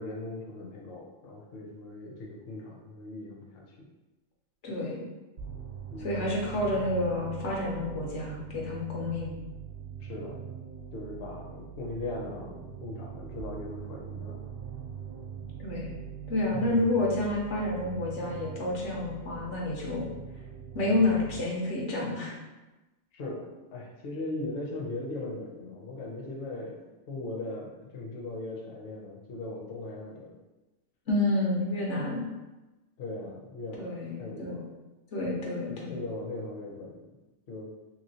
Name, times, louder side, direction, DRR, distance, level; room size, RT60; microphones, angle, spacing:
voice 1, 0.0-3.9 5.9-6.3 10.0-10.4 10.9-14.4 16.5-16.9 23.1-26.8 27.1-30.4 33.0-34.7 35.7-37.0 37.5-37.7, left 2 dB, 60° left, -1 dB, 0.8 m, -39 dB
voice 2, 4.6-5.0 6.0-9.3 15.6-15.9 16.3-20.1 20.7-22.4 31.1-32.3 33.8-34.6 35.1-36.0, left 2 dB, 85° left, -3 dB, 1.1 m, -29 dB
sound 1, 5.4-21.4, right 8 dB, 60° right, 0.8 m, -42 dB
3.0 x 2.9 x 2.7 m, 1.1 s
omnidirectional pair, 1.2 m